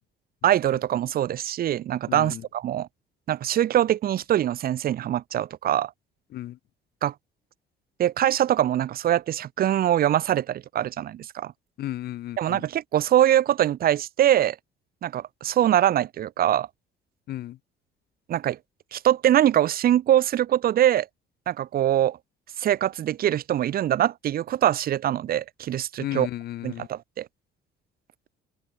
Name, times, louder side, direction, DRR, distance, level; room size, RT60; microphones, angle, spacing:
voice 1, 0.4-2.9 3.3-5.9 7.0-7.1 8.0-11.5 12.4-14.6 15.0-16.7 18.3-18.6 18.9-21.1 21.5-22.2 22.6-26.3 26.6-27.3, right 11 dB, 60° right, 6.6 m, -23 dB
voice 2, 2.1-2.4 6.3-6.6 11.8-12.6 17.3-17.6 26.0-26.9, left 14 dB, 70° left, 6.4 m, -34 dB
open air
cardioid pair, 110°, 17 cm